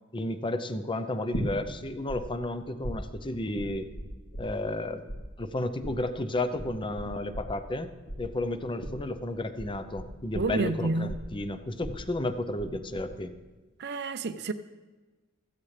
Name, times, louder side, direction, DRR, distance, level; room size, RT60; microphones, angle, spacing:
voice 1, 0.1-3.9 4.4-5.0 5.4-7.9 8.2-13.3, left 1 dB, 25° left, 0.7 m, -32 dB
sound 1, 1.3-2.2 2.4-4.8 5.1-12.7 13.0-13.5, equal, 80° left, 2.9 m, -38 dB
voice 2, 10.3-11.1 13.8-14.5, right 3 dB, 50° right, 0.6 m, -29 dB
16.0 x 14.0 x 3.3 m
head